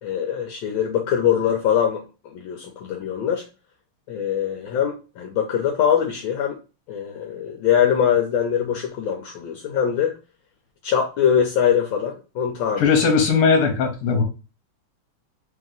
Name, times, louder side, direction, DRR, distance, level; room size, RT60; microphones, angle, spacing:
voice 1, 0.0-3.4 4.1-6.6 6.9-10.1 10.8-12.9, left 8 dB, 75° left, 2 dB, 1.3 m, -22 dB
voice 2, 12.8-14.2, left 5 dB, 55° left, 3 dB, 1.3 m, -18 dB
3.2 x 2.9 x 3.8 m, 0.32 s
omnidirectional pair, 2.4 m